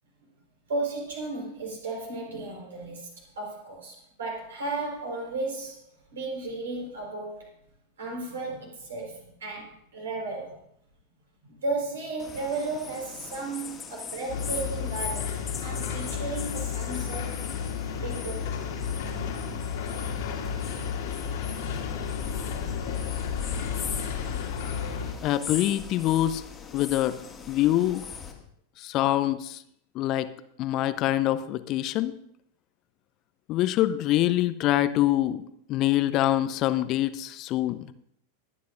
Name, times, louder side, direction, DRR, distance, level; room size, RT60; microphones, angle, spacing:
voice 1, 0.7-5.8 6.1-7.5 8.0-10.6 11.4-17.5 18.0-18.7, right 3 dB, 65° right, -1 dB, 4.3 m, -34 dB
sound 1, 12.2-28.3, left 6 dB, 20° left, 1.9 m, -40 dB
sound 2, 14.3-25.1, left 7 dB, 55° left, 2.1 m, -32 dB
voice 2, 25.2-26.4 26.7-27.1 27.5-28.1 28.8-29.6 30.0-30.3 30.6-32.1 33.5-35.4 35.7-37.8, left 14 dB, 35° left, 13 dB, 0.6 m, -25 dB
21.5 x 9.5 x 2.6 m, 0.70 s
figure-of-eight pair, 90°, 0 cm